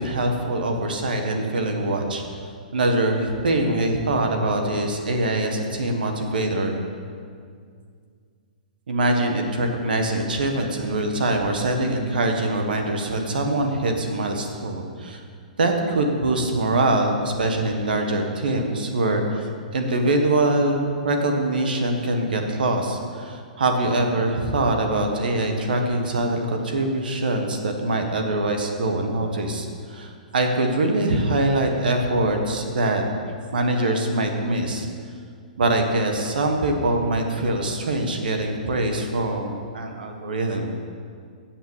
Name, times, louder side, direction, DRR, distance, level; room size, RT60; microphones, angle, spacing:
voice 1, 0.0-2.2 2.7-6.7 8.9-15.2 15.6-33.0 33.5-34.9 35.6-40.7, right 2 dB, 80° right, 4 dB, 1.3 m, -23 dB
7.7 x 7.2 x 7.2 m, 2.1 s
hypercardioid pair, 130°, 5 cm